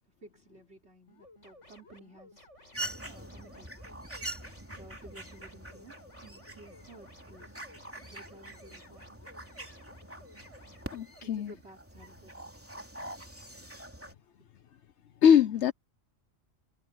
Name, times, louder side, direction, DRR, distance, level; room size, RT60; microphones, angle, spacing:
voice 1, 0.2-2.5 3.0-3.7 4.7-7.6 8.0-9.2 11.2-12.4 12.7-12.9, right 2 dB, 60° right, 4.6 m, -54 dB
sound 1, 1.1-11.2, left 2 dB, 90° left, 8.1 m, -56 dB
sound 2, 2.7-14.1, right 1 dB, 10° right, 3.0 m, -44 dB
voice 2, 10.9-11.5 15.2-15.7, left 8 dB, 70° left, 1.0 m, -22 dB
omnidirectional pair, 1.2 m